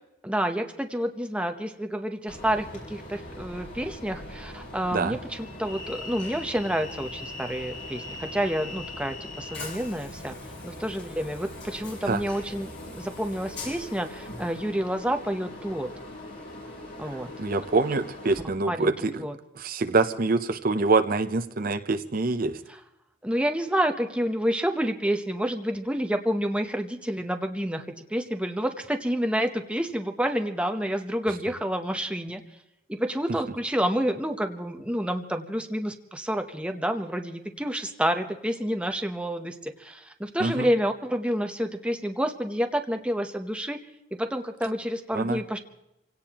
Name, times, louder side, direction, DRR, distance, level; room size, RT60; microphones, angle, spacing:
voice 1, 0.2-10.4 10.6-15.9 17.0-17.6 18.7-18.9 19.2-19.4 23.2-32.4 32.9-43.8 44.2-45.6, equal, 5° right, 6 dB, 0.9 m, -29 dB
Train, 2.3-18.4, left 2 dB, 60° left, 5.7 m, -40 dB
voice 2, 17.4-19.2 19.6-22.6 40.4-40.7 45.1-45.4, right 3 dB, 50° right, 7 dB, 0.7 m, -25 dB
28.0 x 17.0 x 3.0 m, 0.86 s
head